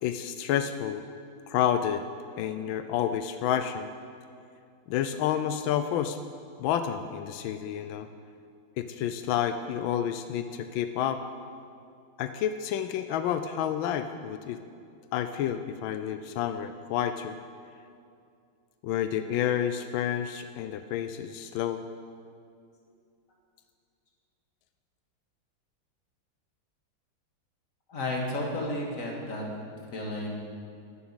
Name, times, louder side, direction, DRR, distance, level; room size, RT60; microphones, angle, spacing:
voice 1, 0.0-1.0 1.5-2.0 2.4-3.9 4.9-6.2 6.6-8.1 8.8-11.2 12.2-14.6 15.1-17.4 18.8-21.8, left 10 dB, 90° left, 9 dB, 1.3 m, -29 dB
voice 2, 27.9-29.4 29.9-30.3, left 1 dB, 45° left, -1 dB, 2.2 m, -32 dB
12.0 x 7.5 x 8.8 m, 2.4 s
omnidirectional pair, 2.1 m